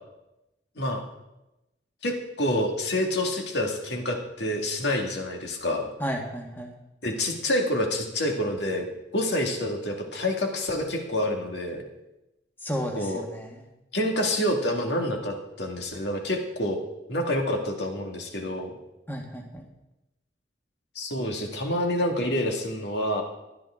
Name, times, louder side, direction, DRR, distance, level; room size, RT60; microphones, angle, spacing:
voice 1, 2.0-5.9 7.0-8.9 9.1-11.8 12.9-13.2 13.9-16.8 17.1-18.7 21.0-23.2, left 1 dB, 65° left, 2 dB, 2.1 m, -27 dB
voice 2, 6.0-6.7 12.6-13.6 19.1-19.6, equal, 10° left, 1 dB, 1.8 m, -32 dB
15.5 x 11.0 x 3.8 m, 0.95 s
head